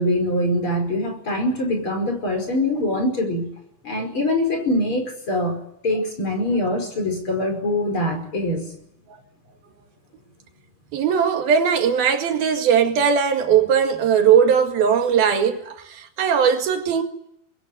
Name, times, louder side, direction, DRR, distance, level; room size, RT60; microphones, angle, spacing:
voice 1, 0.0-3.5 3.8-8.6, left 1 dB, 35° left, 5.9 m, -23 dB
voice 2, 10.9-17.0, right 7 dB, 80° right, 3.9 m, -19 dB
24.5 x 22.0 x 9.2 m
omnidirectional pair, 4.3 m